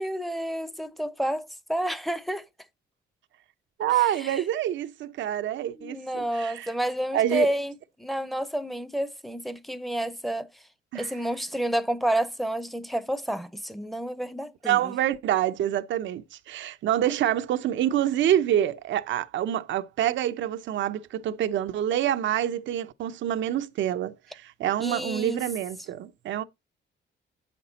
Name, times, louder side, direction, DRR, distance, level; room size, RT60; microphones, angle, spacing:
voice 1, 0.0-2.5 4.0-4.4 5.8-10.5 10.9-14.9 24.8-25.4, right 1 dB, ahead, 0.8 m, -30 dB
voice 2, 3.8-6.7 7.1-7.5 10.9-11.1 14.6-26.4, right 11 dB, 70° right, 0.7 m, -27 dB
7.7 x 6.0 x 4.0 m
cardioid pair, 90°, 20 cm